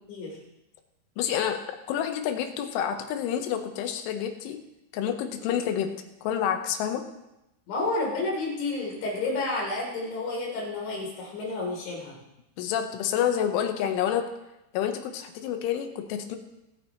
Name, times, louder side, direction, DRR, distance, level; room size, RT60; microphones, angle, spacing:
voice 1, 1.2-1.6 1.9-4.6 4.9-5.9 6.2-7.0 12.6-14.3 14.7-16.4, left 9 dB, 90° left, 6 dB, 3.4 m, -28 dB
voice 2, 7.7-12.2, left 2 dB, 70° left, -2 dB, 5.5 m, -30 dB
24.5 x 8.9 x 3.0 m, 0.91 s
omnidirectional pair, 5.5 m